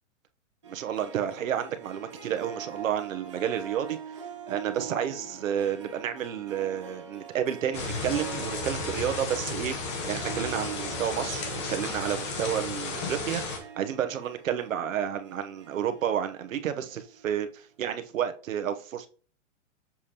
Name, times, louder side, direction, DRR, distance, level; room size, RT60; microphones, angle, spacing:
Harp, 0.6-17.4, right 6 dB, 25° right, 0.4 m, -44 dB
voice 1, 0.7-4.0 4.5-9.8 10.1-19.1, right 9 dB, 90° right, 1.0 m, -31 dB
sound 1, 7.7-13.6, left 3 dB, 20° left, 0.8 m, -33 dB
7.2 x 5.0 x 2.9 m
hypercardioid pair, 175°, 38 cm